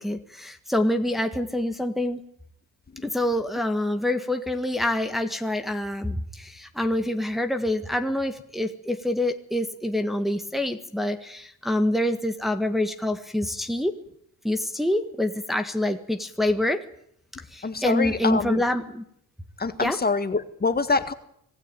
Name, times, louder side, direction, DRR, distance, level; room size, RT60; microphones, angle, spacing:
voice 1, 0.0-2.2 3.0-13.9 14.4-16.8 17.5-19.1 19.8-20.0, left 1 dB, ahead, 5 dB, 1.6 m, -26 dB
voice 2, 17.6-18.6 19.6-21.1, left 4 dB, 30° left, 9 dB, 1.8 m, -25 dB
25.5 x 17.0 x 9.1 m, 0.73 s
cardioid pair, 115°, 34 cm